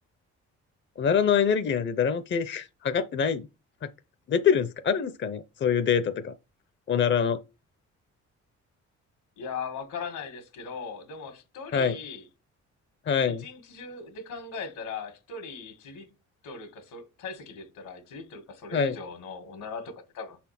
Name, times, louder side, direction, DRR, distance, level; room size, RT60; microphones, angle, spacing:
voice 1, 1.0-3.5 4.3-6.3 6.9-7.4 11.7-12.0 13.1-13.4 18.7-19.0, left 7 dB, 40° left, 0.6 m, -25 dB
voice 2, 9.4-12.3 13.2-16.1 16.4-20.4, left 5 dB, 80° left, 1.8 m, -39 dB
6.2 x 4.3 x 5.8 m
cardioid pair, 90°, 30 cm